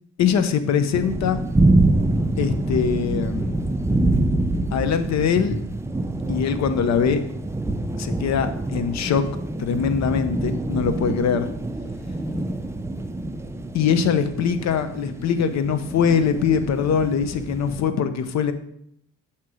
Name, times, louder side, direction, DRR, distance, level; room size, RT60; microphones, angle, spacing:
voice 1, 0.2-1.4 2.4-3.6 4.7-5.6 6.3-7.2 8.0-9.2 9.6-11.5 13.7-18.5, left 7 dB, 60° left, 10 dB, 0.6 m, -22 dB
sound 1, 0.9-17.8, right 2 dB, 10° right, 0.4 m, -26 dB
7.5 x 2.9 x 4.8 m, 0.73 s
cardioid pair, 90°, 30 cm